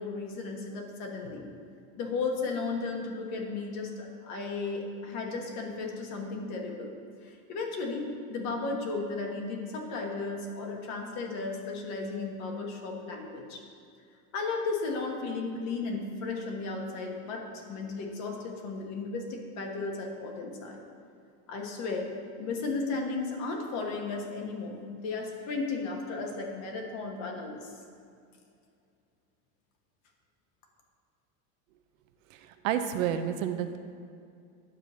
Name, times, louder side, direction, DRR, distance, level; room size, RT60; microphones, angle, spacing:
voice 1, 0.0-1.5 2.0-6.9 7.2-13.6 14.3-20.8 21.5-22.1 22.4-27.7, left 3 dB, 40° left, 1 dB, 1.4 m, -35 dB
voice 2, 32.6-33.8, right 9 dB, 65° right, 8 dB, 0.8 m, -29 dB
10.0 x 4.8 x 6.9 m, 2.4 s
supercardioid pair, 165°, 43 cm